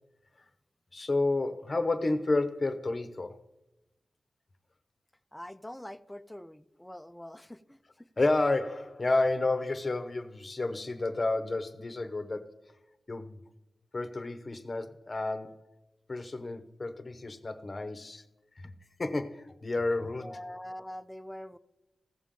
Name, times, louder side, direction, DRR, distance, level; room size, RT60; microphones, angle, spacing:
voice 1, 0.9-3.4 8.2-12.5 13.1-13.4 13.9-15.6 16.1-18.2 18.6-18.7 19.0-20.4, left 2 dB, 35° left, 9 dB, 0.8 m, -30 dB
voice 2, 5.3-7.8 20.2-21.6, left 1 dB, 10° left, 11 dB, 0.4 m, -44 dB
15.5 x 7.1 x 3.7 m, 0.94 s
wide cardioid pair, 90°, 0 cm